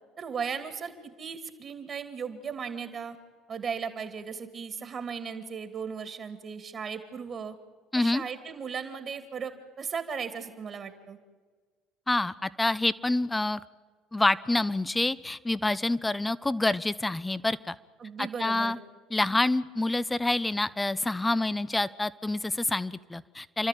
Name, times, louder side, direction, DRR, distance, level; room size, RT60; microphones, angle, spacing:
voice 1, 0.2-3.2 3.5-7.6 7.9-11.2 18.0-18.8, right 6 dB, 45° right, 10 dB, 2.3 m, -36 dB
voice 2, 7.9-8.2 12.1-13.6 14.1-17.8 18.2-18.8 19.1-23.7, left 2 dB, 15° left, 17 dB, 0.8 m, -27 dB
29.5 x 12.5 x 9.1 m, 1.5 s
hypercardioid pair, 65°, 0 cm